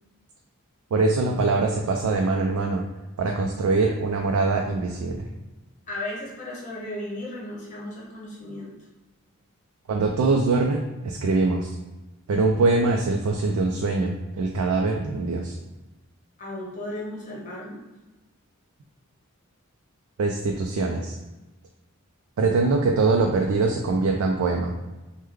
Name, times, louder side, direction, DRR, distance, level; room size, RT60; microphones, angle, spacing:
voice 1, 0.9-2.8 3.2-5.3 9.9-11.8 12.3-15.5 20.2-21.2 22.4-24.7, right 3 dB, 75° right, 1 dB, 0.3 m, -23 dB
voice 2, 5.9-8.7 16.4-17.8, left 1 dB, 35° left, -4 dB, 0.9 m, -35 dB
3.1 x 2.1 x 3.4 m, 1.1 s
head